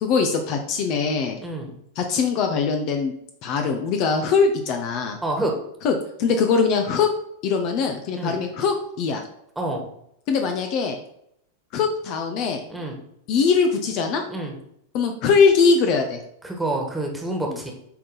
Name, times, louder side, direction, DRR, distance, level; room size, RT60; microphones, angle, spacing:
voice 1, 0.0-1.4 2.0-3.1 3.4-5.2 5.8-7.1 7.4-9.2 10.3-11.0 11.7-12.6 13.3-14.2 14.9-16.2 17.5-17.6, left 5 dB, 40° left, 5 dB, 0.8 m, -21 dB
voice 2, 1.4-1.8 5.2-5.5 8.1-8.4 9.5-9.9 12.7-13.0 14.3-14.5 16.4-17.7, right 2 dB, 5° right, 1 dB, 1.6 m, -27 dB
8.5 x 3.8 x 4.0 m, 0.74 s
figure-of-eight pair, 90°, 0 cm